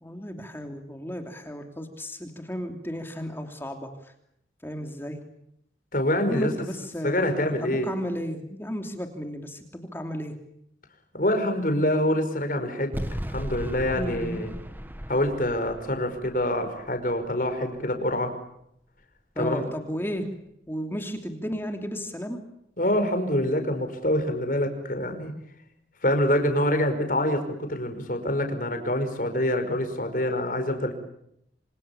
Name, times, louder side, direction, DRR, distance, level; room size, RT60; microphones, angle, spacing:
voice 1, 0.0-3.9 4.6-5.2 6.2-10.3 13.9-14.5 19.4-20.3 20.7-22.4, equal, 15° left, 4 dB, 3.1 m, -34 dB
voice 2, 5.9-6.5 7.0-7.9 11.1-13.0 13.3-14.5 15.1-18.3 19.4-19.7 22.8-25.3 26.0-30.9, left 1 dB, 50° left, 7 dB, 5.5 m, -26 dB
sound 1, 12.9-18.1, equal, 10° right, 1.7 m, -37 dB
27.5 x 27.0 x 7.2 m, 0.75 s
head